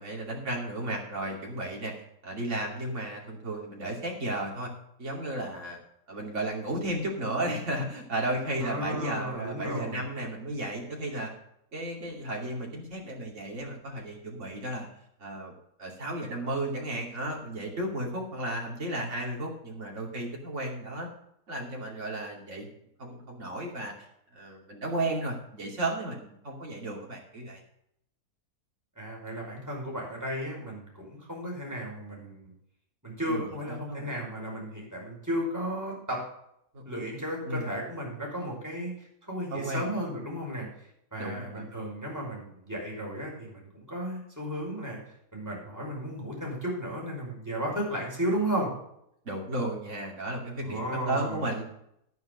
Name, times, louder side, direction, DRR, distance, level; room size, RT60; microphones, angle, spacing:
voice 1, 0.0-1.9 2.2-4.7 5.0-5.8 6.1-11.3 11.7-14.9 15.2-15.5 15.8-21.1 21.5-22.7 23.0-24.1 24.3-27.6 33.3-34.1 36.7-36.8 37.4-37.7 39.5-39.8 41.2-41.7 49.2-51.6, right 1 dB, 50° right, -1 dB, 3.0 m, -34 dB
voice 2, 8.6-10.0 29.0-32.5 33.0-36.2 36.8-40.7 41.1-45.0 45.3-48.7 50.6-51.6, equal, 10° right, -3 dB, 5.1 m, -34 dB
11.0 x 9.4 x 5.2 m, 0.75 s
omnidirectional pair, 1.6 m